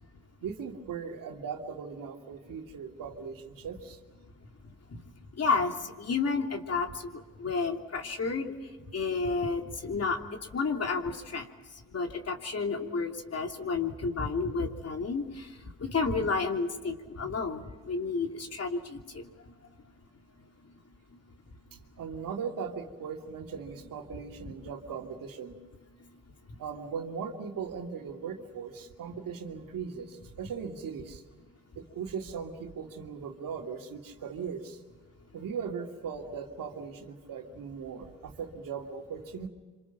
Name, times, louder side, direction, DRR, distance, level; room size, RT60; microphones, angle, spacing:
voice 1, 0.4-4.0 21.7-25.6 26.6-31.2 31.8-34.8 35.3-39.5, right 6 dB, 75° right, 3 dB, 2.7 m, -39 dB
voice 2, 5.4-6.9 7.4-8.5 8.9-10.2 10.5-11.4 11.9-15.5 15.8-19.2, left 4 dB, 50° left, 3 dB, 3.1 m, -31 dB
27.0 x 26.5 x 6.0 m, 1.4 s
cardioid pair, 75°, 33 cm